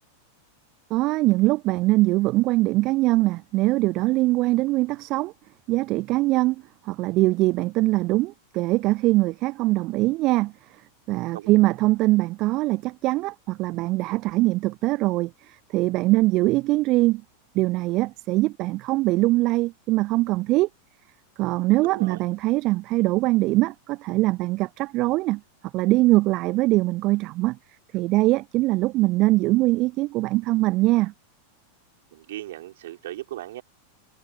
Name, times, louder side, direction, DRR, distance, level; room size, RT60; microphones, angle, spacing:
voice 1, 0.9-5.3 5.7-10.5 11.1-17.2 17.5-20.7 21.4-25.4 25.7-27.6 27.9-31.1, right 19 dB, 40° right, 0.7 m, -22 dB
voice 2, 21.8-22.2 32.1-33.6, right 14 dB, 55° right, 3.8 m, -37 dB
figure-of-eight pair, 90°, 0 cm